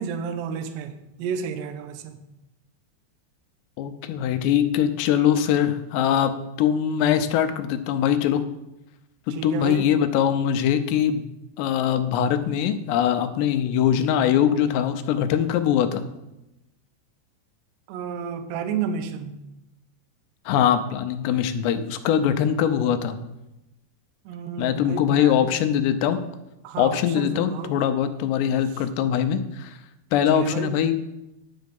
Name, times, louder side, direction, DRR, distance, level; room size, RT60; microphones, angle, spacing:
voice 1, 0.0-2.2 9.3-9.8 17.9-19.4 24.3-25.6 26.6-27.7 30.3-30.7, right 7 dB, 80° right, 8 dB, 3.0 m, -31 dB
voice 2, 3.8-6.3 6.6-8.4 9.3-11.3 11.6-16.0 20.5-23.2 24.6-26.2 26.8-29.8 30.1-31.0, left 9 dB, 85° left, 9 dB, 2.9 m, -22 dB
10.5 x 8.2 x 5.3 m, 0.92 s
omnidirectional pair, 4.9 m